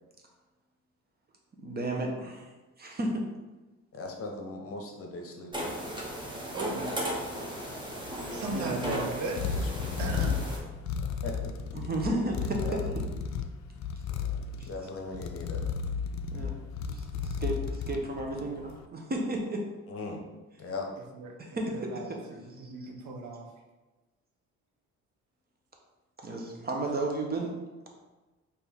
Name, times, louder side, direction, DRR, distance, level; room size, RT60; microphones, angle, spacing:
voice 1, 1.6-2.5 2.8-3.2 8.5-9.0 11.7-12.8 14.6-14.7 16.3-16.5 16.8-19.6 21.4-22.2 22.6-22.7 26.2-27.6, right 1 dB, 30° right, 1 dB, 0.9 m, -33 dB
voice 2, 3.9-5.7 7.7-7.9 8.9-9.0 9.3-9.6 11.0-11.5 12.6-12.9 14.2-14.3 14.7-15.6 19.9-20.2 20.6-20.9, left 3 dB, 50° left, 2 dB, 0.9 m, -39 dB
sound 1, 5.5-10.6, equal, 15° right, 1.0 m, -36 dB
voice 3, 6.5-6.9 8.3-9.7 10.0-10.4 21.1-21.4 21.7-23.5 26.8-26.9, right 3 dB, 75° right, 2 dB, 0.8 m, -37 dB
sound 2, 8.1-18.7, left 6 dB, 65° left, 0.5 m, -34 dB
4.3 x 2.8 x 3.5 m, 1.2 s
cardioid pair, 90°, 30 cm